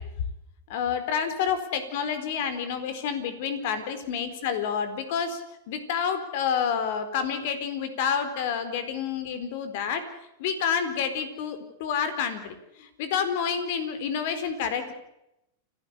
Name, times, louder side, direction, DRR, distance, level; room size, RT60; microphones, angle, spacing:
voice 1, 0.7-5.4 5.7-10.0 10.4-14.9, left 7 dB, 60° left, 10 dB, 4.3 m, -29 dB
29.5 x 12.5 x 8.4 m, 0.84 s
hypercardioid pair, 105°, 0 cm